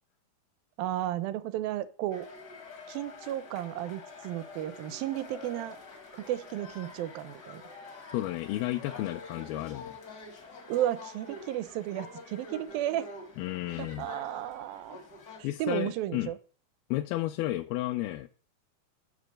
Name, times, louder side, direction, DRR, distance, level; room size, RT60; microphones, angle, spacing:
voice 1, 0.8-2.3 2.9-5.8 6.2-7.6 10.7-13.1 13.8-15.0 15.4-16.4, right 13 dB, 80° right, 14 dB, 2.3 m, -33 dB
sound 1, 2.1-15.4, left 3 dB, 60° left, 1.0 m, -47 dB
voice 2, 8.1-9.9 13.4-14.1 15.4-16.3 16.9-18.3, left 16 dB, 85° left, 5 dB, 2.4 m, -32 dB
6.8 x 6.7 x 6.3 m, 0.41 s
omnidirectional pair, 4.3 m